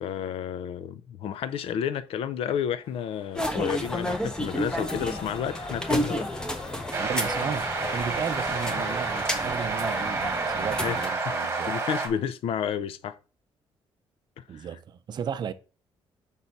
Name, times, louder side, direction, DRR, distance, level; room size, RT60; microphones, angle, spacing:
voice 1, 0.0-6.3 10.8-11.1 11.7-13.2 14.4-14.7, left 8 dB, 75° left, 0.5 m, -31 dB
sound 1, 2.8-8.9, left 3 dB, 50° left, 1.5 m, -41 dB
sound 2, 3.3-11.1, equal, 5° left, 0.9 m, -32 dB
sound 3, 6.9-12.1, right 4 dB, 25° right, 1.5 m, -29 dB
voice 2, 6.9-11.8 14.5-15.5, right 7 dB, 45° right, 0.6 m, -34 dB
5.5 x 4.0 x 5.8 m
cardioid pair, 130°, 10 cm